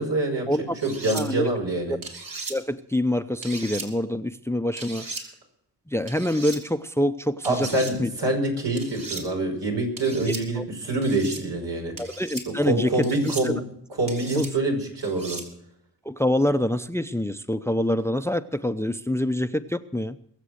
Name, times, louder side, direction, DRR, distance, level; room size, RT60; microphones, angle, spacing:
voice 1, 0.0-0.5 0.8-2.0 7.4-11.9 12.6-13.6 14.0-15.4, right 2 dB, 80° right, 0 dB, 5.5 m, -25 dB
sound 1, 0.8-1.2 2.0-2.5 3.4-3.9 4.8-5.2 6.1-6.6 7.4-7.9 8.8-9.2 10.0-10.4 11.0-11.4 12.0-12.4 13.0-13.5 14.1-14.5 15.0-15.5, right 3 dB, 55° right, 3.6 m, -37 dB
voice 2, 1.1-1.5 2.5-5.1 5.9-7.7 8.0-8.1 10.6-10.7 12.0-12.9 13.4-13.5 14.4-14.5 16.1-20.2, left 1 dB, 5° left, 11 dB, 0.6 m, -25 dB
22.0 x 7.6 x 6.5 m, 0.71 s
cardioid pair, 70°, 41 cm